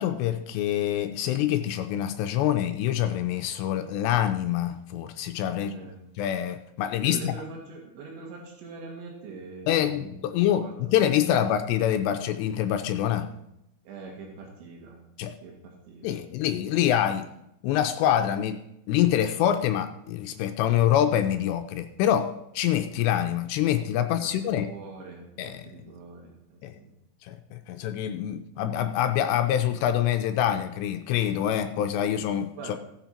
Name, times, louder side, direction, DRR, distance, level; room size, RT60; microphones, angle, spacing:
voice 1, 0.0-5.7 6.2-7.4 9.7-13.3 15.2-15.3 16.0-17.3 17.6-18.6 18.9-24.7 25.4-25.7 26.6-26.8 27.2-32.8, left 11 dB, 85° left, 8 dB, 2.7 m, -25 dB
voice 2, 5.5-6.0 7.0-11.6 13.9-15.0 15.4-16.2 24.0-26.9 32.6-32.8, right 4 dB, 90° right, -1 dB, 4.3 m, -43 dB
16.5 x 7.0 x 4.4 m, 0.84 s
omnidirectional pair, 5.1 m